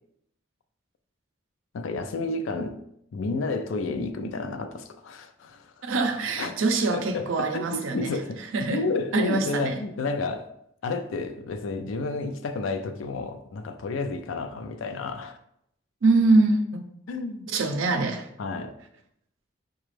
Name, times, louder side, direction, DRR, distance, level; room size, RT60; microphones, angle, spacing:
voice 1, 1.7-2.8 3.1-5.7 6.4-6.5 6.9-8.4 8.7-10.5 10.8-15.4 17.1-17.5 18.4-18.7, left 3 dB, 85° left, 0.4 m, -31 dB
voice 2, 5.8-9.8 16.0-16.8 17.5-18.3, right 3 dB, 85° right, 0.5 m, -24 dB
4.9 x 2.3 x 3.1 m
head